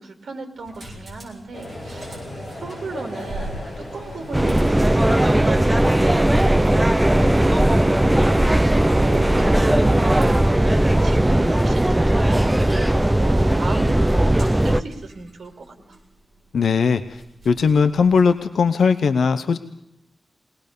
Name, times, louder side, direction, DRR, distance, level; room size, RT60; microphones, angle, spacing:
voice 1, 0.0-2.1 2.6-8.3 8.9-16.0, right 3 dB, 70° right, 6 dB, 2.9 m, -35 dB
sound 1, 0.5-18.4, right 1 dB, 25° right, 7.2 m, -44 dB
sound 2, 1.5-10.1, left 1 dB, 15° left, 6.0 m, -36 dB
sound 3, 4.3-14.8, right 1 dB, 10° right, 0.6 m, -17 dB
voice 2, 16.5-19.6, left 5 dB, 75° left, 10 dB, 0.8 m, -19 dB
22.0 x 19.0 x 6.8 m, 0.87 s
wide cardioid pair, 175°, 0 cm